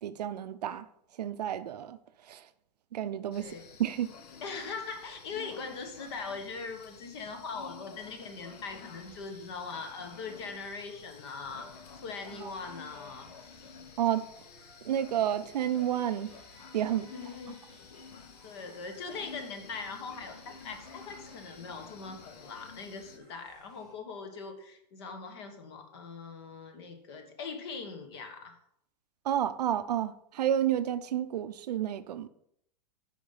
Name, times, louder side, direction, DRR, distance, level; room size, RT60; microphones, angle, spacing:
voice 1, 0.0-0.9 1.2-2.0 2.3-2.5 2.9-3.5 3.8-4.1 12.4-12.5 14.0-14.2 14.8-16.3 16.7-17.1 29.2-32.3, right 10 dB, 70° right, 0.6 m, -30 dB
sound 1, 3.3-23.2, left 5 dB, 65° left, 1.1 m, -51 dB
voice 2, 3.3-3.7 4.4-13.3 17.1-17.6 18.4-28.6, left 4 dB, 40° left, 1.4 m, -41 dB
sound 2, 8.6-23.9, equal, ahead, 2.2 m, -61 dB
9.8 x 5.2 x 5.5 m
supercardioid pair, 180°, 21 cm